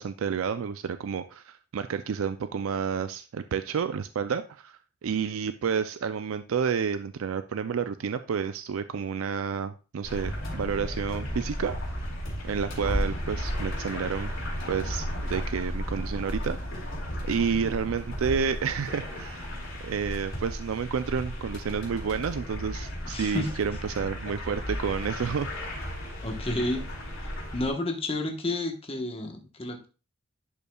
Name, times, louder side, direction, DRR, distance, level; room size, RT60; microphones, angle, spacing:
voice 1, 0.0-11.8 12.4-14.3 14.7-16.6 17.2-19.5 19.8-25.5, right 6 dB, 80° right, 11 dB, 0.4 m, -30 dB
sound 1, 10.0-27.7, equal, 65° left, 2.6 m, -34 dB
voice 2, 23.0-23.5 26.2-26.9 27.2-29.9, left 2 dB, 30° left, 4 dB, 1.2 m, -31 dB
11.0 x 5.5 x 2.3 m, 0.33 s
head